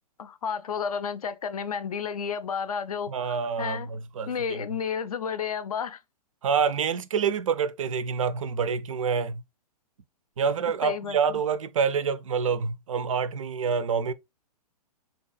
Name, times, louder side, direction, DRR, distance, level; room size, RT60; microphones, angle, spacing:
voice 1, 0.2-3.9 4.3-6.0 10.8-11.4, left 6 dB, 65° left, 0.4 m, -32 dB
voice 2, 3.1-4.6 6.4-9.4 10.4-14.1, right 6 dB, 55° right, 0.4 m, -27 dB
3.5 x 2.8 x 2.3 m
figure-of-eight pair, 115°, 21 cm